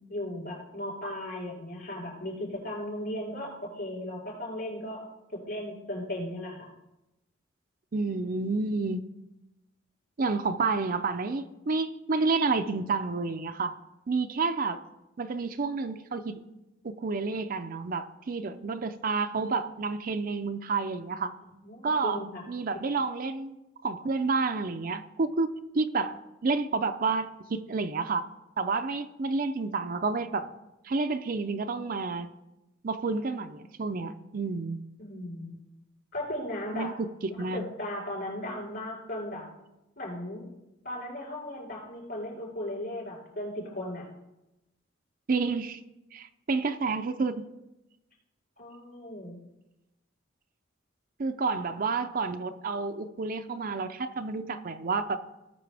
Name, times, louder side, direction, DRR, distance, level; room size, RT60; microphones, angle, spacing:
voice 1, 0.1-5.0 5.3-6.7 21.5-22.4 35.0-35.5 36.1-36.9 37.4-39.4 40.0-40.5 40.8-44.1 48.6-49.4, left 1 dB, 55° left, -1 dB, 4.4 m, -36 dB
voice 2, 7.9-9.0 10.2-13.8 14.1-14.8 15.2-16.5 16.8-21.3 21.8-22.2 22.5-23.6 23.8-28.3 28.6-30.5 30.8-32.3 32.8-34.8 36.7-37.1 37.4-37.6 45.3-45.8 46.1-47.4 51.2-55.2, right 4 dB, 45° right, 9 dB, 0.5 m, -30 dB
18.0 x 6.1 x 3.4 m, 0.96 s
head